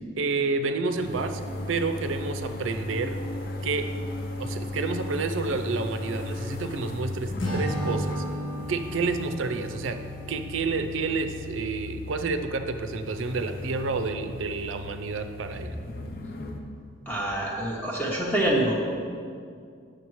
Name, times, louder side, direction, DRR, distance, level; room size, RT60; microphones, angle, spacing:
voice 1, 0.2-1.4 1.7-3.2 3.6-3.9 4.4-8.2 8.7-10.0 10.3-15.8, right 4 dB, 80° right, 7 dB, 0.5 m, -29 dB
sound 1, 0.9-16.6, left 2 dB, 50° left, 0.6 m, -36 dB
Acoustic guitar / Strum, 7.4-10.7, equal, 85° left, 1.2 m, -33 dB
voice 2, 17.1-18.7, right 1 dB, 10° left, -3 dB, 0.7 m, -26 dB
9.6 x 6.4 x 3.1 m, 2.3 s
head